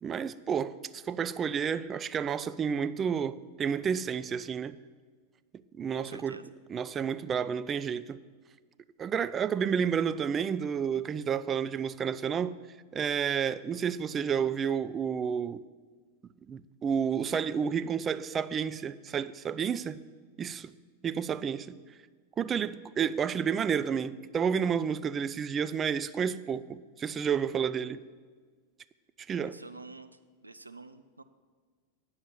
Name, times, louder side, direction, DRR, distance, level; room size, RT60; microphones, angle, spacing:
voice 1, 0.0-4.8 5.7-6.4 6.7-8.2 9.0-12.6 12.9-15.6 16.5-20.0 20.4-20.7 21.0-21.8 22.4-28.0 29.3-29.6, right 7 dB, 25° right, 0.3 m, -30 dB
voice 2, 6.0-6.4 29.4-31.2, right 3 dB, 85° right, 0.4 m, -48 dB
9.3 x 5.6 x 7.7 m
figure-of-eight pair, 90°, 0 cm